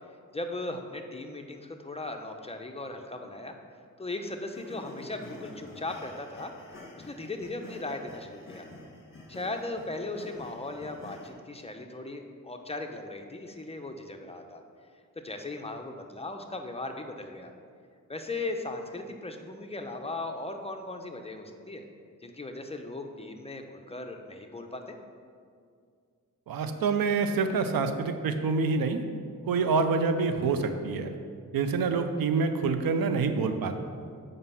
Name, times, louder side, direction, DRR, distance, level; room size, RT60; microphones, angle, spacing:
voice 1, 0.3-3.5 4.0-6.5 7.0-8.7 9.3-14.6 15.2-17.5 18.1-21.8 22.2-24.8, left 2 dB, 20° left, 4 dB, 0.8 m, -38 dB
sound 1, 4.5-11.3, left 1 dB, 40° left, 1.9 m, -48 dB
voice 2, 26.5-29.0 29.5-31.1 31.5-33.8, right 4 dB, 85° right, 8 dB, 0.7 m, -27 dB
7.6 x 5.3 x 5.7 m, 2.2 s
cardioid pair, 75°, 34 cm